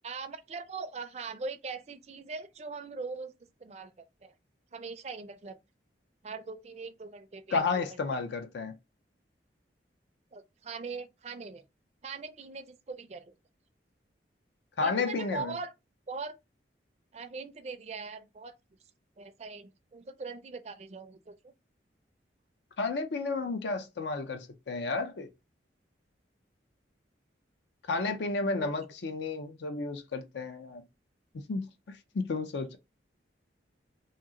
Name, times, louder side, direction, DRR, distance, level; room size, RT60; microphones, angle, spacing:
voice 1, 0.0-3.3 3.6-3.9 4.2-4.3 4.7-5.6 6.2-8.0 10.3-11.6 12.0-13.3 14.8-15.7 16.1-16.4 17.1-18.5 19.2-21.5 28.6-28.7, right 4 dB, 35° right, 0.4 m, -41 dB
voice 2, 7.5-8.7 14.8-15.6 22.8-25.3 27.9-30.8 31.3-32.8, left 4 dB, 70° left, 0.5 m, -32 dB
2.9 x 2.8 x 3.6 m
head